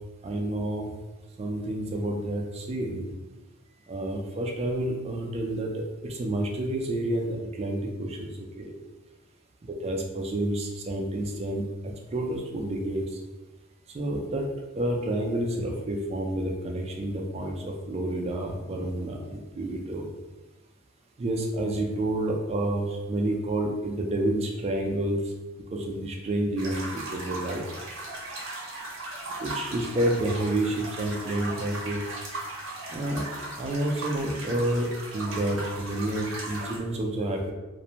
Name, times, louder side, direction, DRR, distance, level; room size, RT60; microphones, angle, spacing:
voice 1, 0.2-0.9 1.4-3.1 3.9-8.3 8.6-8.7 9.8-11.6 12.1-13.0 13.9-14.5 14.8-20.1 21.2-25.2 25.7-27.6 29.4-32.0 32.9-33.3 33.6-37.5, right 1 dB, 30° right, 1 dB, 0.3 m, -29 dB
sound 1, 26.6-36.8, right 2 dB, 65° right, 0.6 m, -37 dB
2.5 x 2.1 x 2.8 m, 1.1 s
head